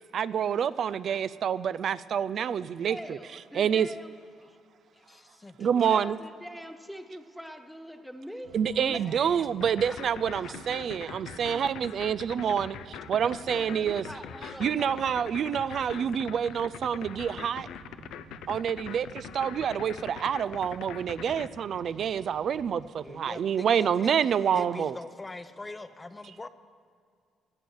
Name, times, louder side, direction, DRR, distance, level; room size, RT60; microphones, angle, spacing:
voice 1, 0.1-3.2 3.5-3.9 5.6-6.2 8.5-14.0 14.6-17.7 18.5-25.0, right 8 dB, 60° right, 15 dB, 0.4 m, -27 dB
voice 2, 2.9-4.1 4.4-4.5 5.7-8.5 13.5-15.3 15.7-15.9, equal, ahead, 7 dB, 1.3 m, -43 dB
voice 3, 4.9-5.9 8.7-9.5 9.8-10.0 10.4-10.5 23.0-24.1 24.5-26.5, left 2 dB, 20° left, 11 dB, 0.6 m, -42 dB
sound 1, 8.4-22.8, right 6 dB, 90° right, 0.9 m, -51 dB
sound 2, 9.6-21.5, left 10 dB, 85° left, 0.5 m, -42 dB
17.5 x 9.4 x 6.3 m, 2.2 s
cardioid pair, 90°, 0 cm